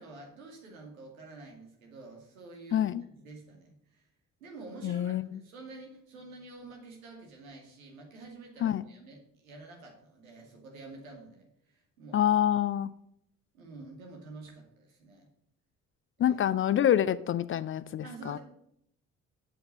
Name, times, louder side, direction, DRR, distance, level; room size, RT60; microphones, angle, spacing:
voice 1, 0.0-2.9 3.2-4.1 4.4-12.3 13.5-15.3 16.2-16.4 18.0-18.4, right 3 dB, 80° right, 0 dB, 2.3 m, -48 dB
voice 2, 2.7-3.0 4.8-5.3 8.6-8.8 12.1-12.9 16.2-18.4, left 10 dB, 30° left, 17 dB, 0.4 m, -26 dB
7.8 x 7.5 x 6.3 m, 0.73 s
figure-of-eight pair, 45°, 41 cm